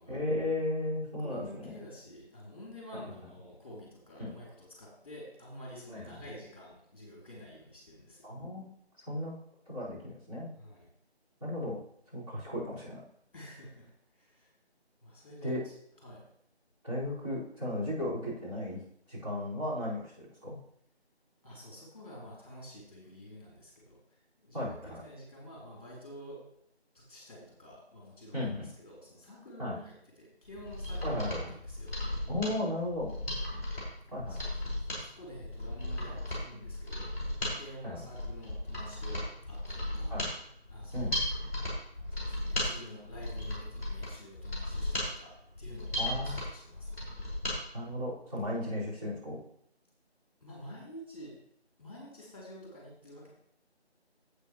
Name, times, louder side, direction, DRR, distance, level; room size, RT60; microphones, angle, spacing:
voice 1, 0.1-1.7 4.2-4.3 5.9-6.0 8.2-8.6 9.1-9.4 9.7-10.5 11.4-11.8 12.1-13.0 15.4-15.6 16.8-18.8 19.1-20.6 24.5-25.0 28.3-28.7 29.6-29.8 31.0-31.4 32.3-33.1 34.1-34.5 37.8-38.0 40.1-40.3 40.9-41.2 46.0-46.4 47.7-49.4, left 1 dB, 35° right, -10 dB, 4.6 m, -35 dB
voice 2, 1.0-8.3 10.6-10.9 13.3-14.5 15.0-16.3 21.4-26.4 26.9-31.2 31.6-32.0 34.1-40.2 40.7-41.3 41.9-47.1 50.4-51.4 51.8-53.3, equal, 30° left, -4 dB, 3.1 m, -49 dB
Mechanisms, 30.5-47.6 47.9-48.0, left 1 dB, 15° left, 4.3 m, -36 dB
12.0 x 8.1 x 3.1 m, 0.70 s
figure-of-eight pair, 170°, 33 cm